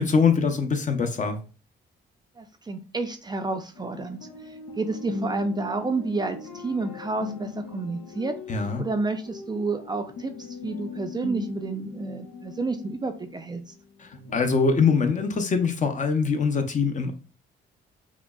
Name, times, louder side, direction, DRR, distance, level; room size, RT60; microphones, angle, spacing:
voice 1, 0.0-1.4 8.5-8.8 14.0-17.1, left 5 dB, 40° left, 0.6 m, -23 dB
voice 2, 2.4-4.2 4.5-8.3 8.8-13.7, right 3 dB, 20° right, 0.4 m, -30 dB
sound 1, 3.7-13.8 14.1-14.9, left 3 dB, 90° left, 0.7 m, -39 dB
5.7 x 2.0 x 2.3 m
cardioid pair, 90°, 20 cm